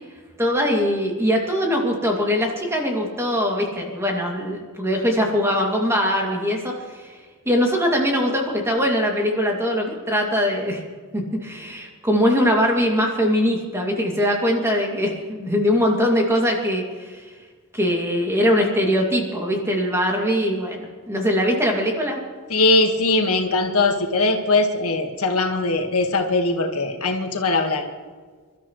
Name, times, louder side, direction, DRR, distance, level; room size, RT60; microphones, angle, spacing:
voice 1, 0.4-7.1 7.5-10.8 11.1-17.2 17.7-22.2, equal, 10° right, 0 dB, 2.5 m, -22 dB
voice 2, 22.5-27.9, left 2 dB, 85° left, 3 dB, 1.7 m, -20 dB
28.0 x 13.0 x 3.2 m, 1.5 s
head